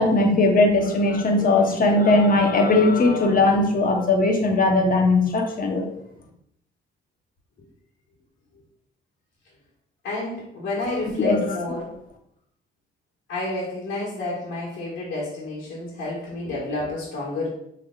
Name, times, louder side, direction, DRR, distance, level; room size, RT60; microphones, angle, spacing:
voice 1, 0.0-5.9 11.2-11.5, left 2 dB, 45° left, 2 dB, 1.0 m, -19 dB
voice 2, 10.0-11.9 13.3-17.5, left 2 dB, 65° left, -6 dB, 1.7 m, -30 dB
5.8 x 3.4 x 2.4 m, 0.74 s
cardioid pair, 90°, 20 cm